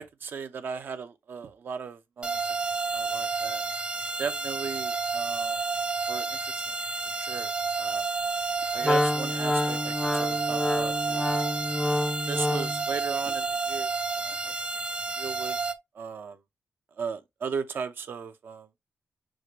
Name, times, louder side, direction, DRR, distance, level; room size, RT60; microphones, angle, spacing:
voice 1, 0.0-2.4 2.9-3.6 4.2-5.6 6.1-6.6 7.2-7.5 7.8-8.0 8.7-11.5 12.3-13.9 14.2-14.5 15.2-15.6 15.9-16.4 17.0-18.7, right 6 dB, 60° right, 0.8 m, -37 dB
sound 1, 2.2-15.7, right 4 dB, 30° right, 0.7 m, -30 dB
Wind instrument woodwind instrument, 8.8-12.9, left 1 dB, 5° left, 0.4 m, -28 dB
6.3 x 2.5 x 3.0 m
cardioid pair, 90°, 4 cm